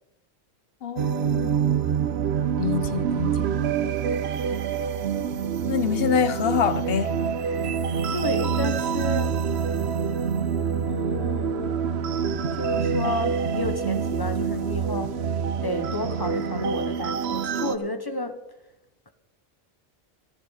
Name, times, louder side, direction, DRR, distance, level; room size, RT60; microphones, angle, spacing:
voice 1, 0.8-1.6 2.6-3.5 5.6-7.2, left 7 dB, 65° left, 0.8 m, -26 dB
sound 1, 1.0-17.8, right 7 dB, 70° right, 0.9 m, -26 dB
voice 2, 8.1-9.4 10.8-11.8 12.3-15.2 15.6-18.4, left 1 dB, 20° left, 0.9 m, -31 dB
13.5 x 13.0 x 4.1 m
omnidirectional pair, 1.1 m